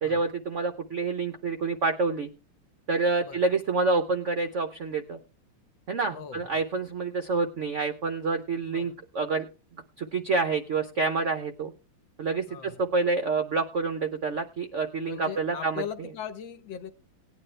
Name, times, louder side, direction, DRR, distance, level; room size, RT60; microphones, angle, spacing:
voice 1, 0.0-2.3 2.9-5.2 5.9-9.5 10.0-11.7 12.2-15.8, right 4 dB, 65° right, 8 dB, 0.7 m, -28 dB
voice 2, 6.1-6.5 8.7-9.0 12.5-12.8 15.0-16.9, left 8 dB, 70° left, 10 dB, 1.8 m, -39 dB
18.5 x 9.5 x 3.2 m, 0.31 s
omnidirectional pair, 2.3 m